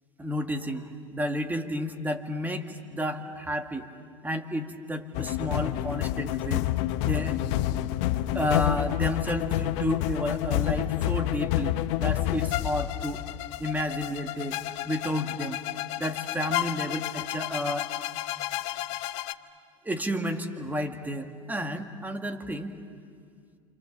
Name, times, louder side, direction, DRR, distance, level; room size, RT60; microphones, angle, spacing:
voice 1, 0.2-3.9 4.2-6.7 7.0-7.4 8.3-13.2 13.6-14.6 14.9-15.6 16.0-17.9 19.8-22.8, equal, 10° right, 5 dB, 2.1 m, -31 dB
sound 1, 5.1-19.3, left 14 dB, 65° left, 0.9 m, -29 dB
28.5 x 26.5 x 7.4 m, 2.1 s
hypercardioid pair, 95°, 17 cm